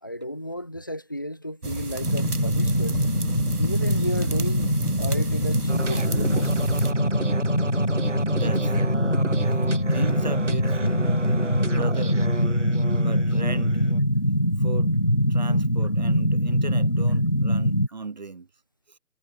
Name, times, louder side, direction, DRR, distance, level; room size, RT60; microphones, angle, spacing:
voice 1, 0.0-3.0 3.6-4.7 5.0-6.7 12.7-12.9 15.5-15.6, equal, 15° left, 1.2 m, -34 dB
campfire in the woods front, 1.6-6.9, right 3 dB, 65° right, 2.1 m, -32 dB
sound 1, 2.0-17.9, equal, 35° left, 0.7 m, -23 dB
sound 2, 5.7-14.0, right 3 dB, 45° right, 3.9 m, -33 dB
voice 2, 8.3-9.0 9.8-11.0 11.6-12.2 12.9-13.9 14.6-15.0 15.3-18.5, right 4 dB, 25° right, 2.6 m, -36 dB
figure-of-eight pair, 160°, 48 cm